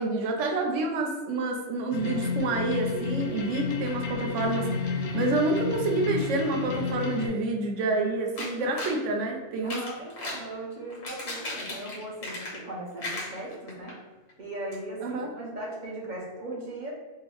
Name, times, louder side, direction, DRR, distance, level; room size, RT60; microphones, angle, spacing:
voice 1, 0.0-9.8 15.0-15.3, right 2 dB, 75° right, 2 dB, 0.9 m, -28 dB
sound 1, 1.9-7.3, left 4 dB, 65° left, 0.8 m, -31 dB
sound 2, 8.4-9.0 9.6-10.5 10.9-12.7 13.0-13.9 14.3-14.4 14.7-14.8, left 2 dB, 85° left, 1.3 m, -36 dB
voice 2, 9.6-14.0 14.4-16.9, right 1 dB, 45° right, -3 dB, 0.7 m, -38 dB
3.8 x 2.0 x 3.0 m, 1.2 s
omnidirectional pair, 1.3 m